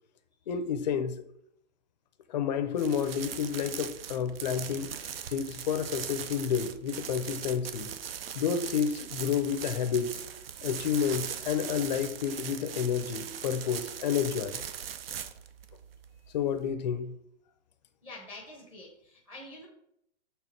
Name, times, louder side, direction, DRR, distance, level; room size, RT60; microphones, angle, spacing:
voice 1, 0.5-1.2 2.3-4.9 5.3-7.9 8.3-10.2 10.6-14.6 16.3-17.1, left 7 dB, 35° left, 0.6 m, -30 dB
sound 1, 2.7-16.7, right 8 dB, 50° right, 0.6 m, -40 dB
voice 2, 18.0-19.7, left 2 dB, 5° right, 0.8 m, -46 dB
6.4 x 3.6 x 5.7 m
hypercardioid pair, 160°, 37 cm